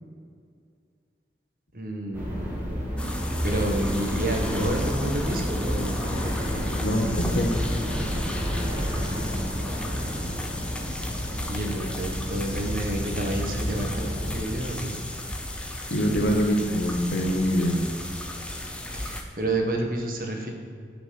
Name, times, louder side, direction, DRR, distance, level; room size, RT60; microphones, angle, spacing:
voice 1, 1.7-2.8 3.4-6.6 11.5-15.0 18.9-20.5, right 1 dB, 50° right, 2 dB, 1.6 m, -30 dB
sound 1, 2.1-14.4, equal, 10° right, 2.4 m, -30 dB
sound 2, 3.0-19.2, left 1 dB, 5° left, 0.8 m, -34 dB
voice 2, 6.8-7.6 15.9-17.7, equal, 80° left, 2 dB, 1.7 m, -24 dB
10.5 x 6.1 x 7.9 m, 2.2 s
head